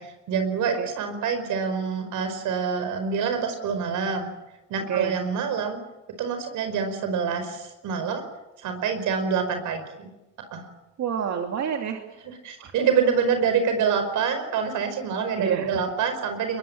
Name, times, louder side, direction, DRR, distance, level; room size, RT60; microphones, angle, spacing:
voice 1, 0.0-4.3 4.7-5.8 6.2-8.2 8.6-10.1 10.5-10.7 12.2-16.6, right 6 dB, 90° right, 8 dB, 5.0 m, -26 dB
voice 2, 11.0-12.0 12.6-12.7 15.4-15.8, right 8 dB, 65° right, 3 dB, 2.6 m, -28 dB
23.0 x 21.5 x 8.8 m, 0.99 s
cardioid pair, 90°, 30 cm